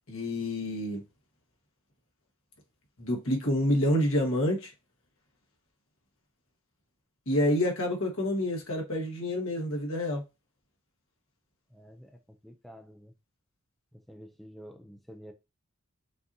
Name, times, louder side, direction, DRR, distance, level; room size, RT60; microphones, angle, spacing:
voice 1, 0.1-1.0 3.0-4.7 7.3-10.2, left 1 dB, 75° left, 1.4 m, -28 dB
voice 2, 11.7-12.1 12.4-13.1 14.1-15.3, equal, ahead, 0.4 m, -49 dB
5.7 x 2.7 x 2.7 m
head